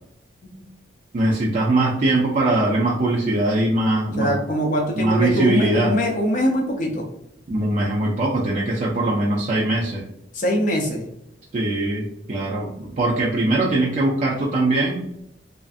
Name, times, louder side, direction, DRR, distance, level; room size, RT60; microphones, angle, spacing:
voice 1, 1.1-4.4 5.0-6.0 7.5-10.1 11.5-15.0, right 2 dB, 40° right, -4 dB, 0.4 m, -21 dB
voice 2, 4.2-7.1 10.3-11.1, equal, 45° left, 1 dB, 0.4 m, -23 dB
2.5 x 2.4 x 2.4 m, 0.76 s
head